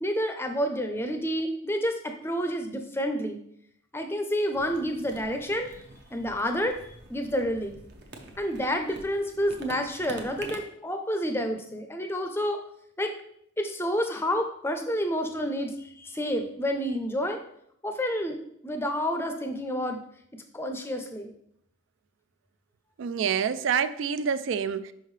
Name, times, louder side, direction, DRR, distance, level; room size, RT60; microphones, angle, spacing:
voice 1, 0.0-3.4 3.9-5.7 6.1-6.8 7.1-7.8 8.4-12.6 13.0-13.1 13.6-17.4 17.8-20.0 20.5-21.3, equal, 10° left, 5 dB, 0.5 m, -29 dB
sound 1, 4.5-10.6, right 2 dB, 55° right, 0.7 m, -46 dB
voice 2, 23.0-24.9, right 7 dB, 70° right, 13 dB, 0.3 m, -27 dB
5.5 x 5.4 x 3.2 m, 0.70 s
head